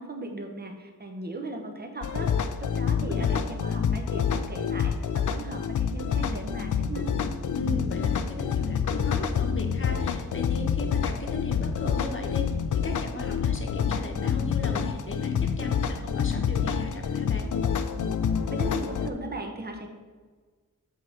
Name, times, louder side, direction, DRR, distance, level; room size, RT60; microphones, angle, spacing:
voice 1, 0.0-7.2 18.5-19.9, right 2 dB, 30° right, 3 dB, 1.0 m, -37 dB
sound 1, 2.0-19.1, left 7 dB, 65° left, 0.5 m, -27 dB
voice 2, 2.9-3.3 7.5-12.5 12.7-17.5, left 2 dB, 40° left, 3 dB, 1.0 m, -37 dB
7.5 x 3.6 x 5.9 m, 1.4 s
wide cardioid pair, 110°, 33 cm